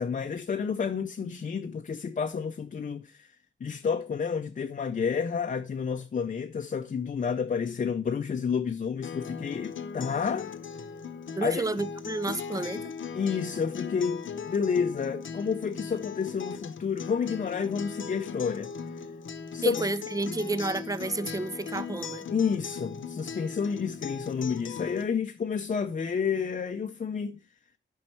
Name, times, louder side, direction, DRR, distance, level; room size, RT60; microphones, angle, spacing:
voice 1, 0.0-3.3 3.6-10.5 11.4-11.6 13.1-18.7 19.5-19.8 22.3-27.4, left 6 dB, 45° left, 0.5 m, -30 dB
Acoustic guitar, 9.0-25.0, left 6 dB, 85° left, 0.7 m, -38 dB
voice 2, 11.4-12.8 19.6-22.3, right 3 dB, 20° right, 0.4 m, -31 dB
9.6 x 5.4 x 4.3 m
wide cardioid pair, 125°, 19 cm